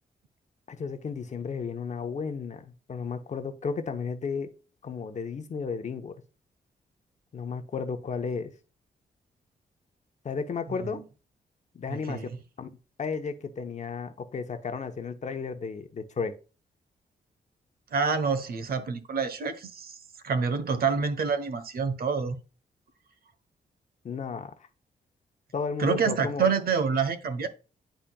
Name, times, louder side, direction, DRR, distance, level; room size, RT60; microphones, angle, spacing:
voice 1, 0.7-4.5 4.8-6.2 7.3-8.5 10.2-11.0 11.7-12.3 12.6-12.7 13.0-16.3 24.0-24.5 25.5-26.5, left 5 dB, 45° left, 1.0 m, -33 dB
voice 2, 11.9-12.4 17.9-20.0 20.2-22.4 25.8-27.5, right 5 dB, 70° right, 1.0 m, -27 dB
10.0 x 4.2 x 2.3 m
wide cardioid pair, 130°, 16 cm